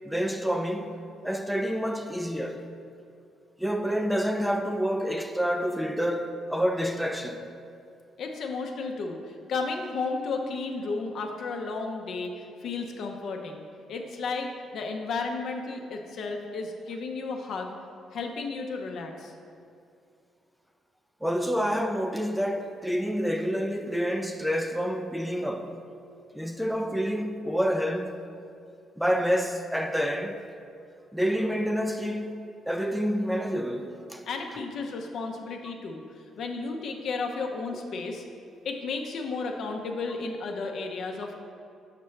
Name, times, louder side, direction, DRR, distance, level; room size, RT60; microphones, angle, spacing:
voice 1, 0.0-1.0 1.2-2.6 3.6-7.4 21.2-25.7 26.3-28.1 29.0-30.4 31.1-34.2 34.5-34.7, equal, ahead, 0.4 m, -28 dB
voice 2, 8.2-17.7 18.1-19.3 34.3-36.0 36.4-38.2 38.6-41.4, left 4 dB, 70° left, 0.6 m, -33 dB
5.8 x 5.7 x 3.2 m
cardioid pair, 90°, 0 cm